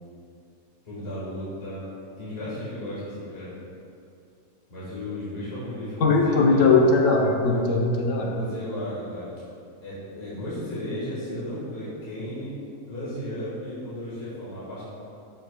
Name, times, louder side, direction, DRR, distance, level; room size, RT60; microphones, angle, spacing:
voice 1, 0.8-1.9 2.2-3.5 4.7-6.7 8.1-9.3 9.8-12.5 12.9-14.8, left 1 dB, 45° left, -10 dB, 2.1 m, -34 dB
voice 2, 6.0-8.3, left 3 dB, 60° left, -1 dB, 1.2 m, -20 dB
13.0 x 5.1 x 2.3 m, 2.5 s
omnidirectional pair, 1.5 m